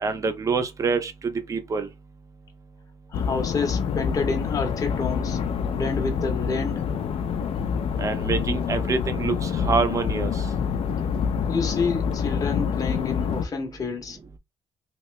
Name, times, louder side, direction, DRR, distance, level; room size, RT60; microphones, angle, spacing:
voice 1, 0.0-1.9 8.0-10.3, right 4 dB, 30° right, 0.6 m, -26 dB
sound 1, 3.1-13.5, left 7 dB, 55° left, 0.5 m, -27 dB
voice 2, 3.1-5.4 5.7-6.8 11.5-14.2, left 4 dB, 30° left, 0.8 m, -29 dB
2.9 x 2.8 x 3.2 m
cardioid pair, 140°, 12 cm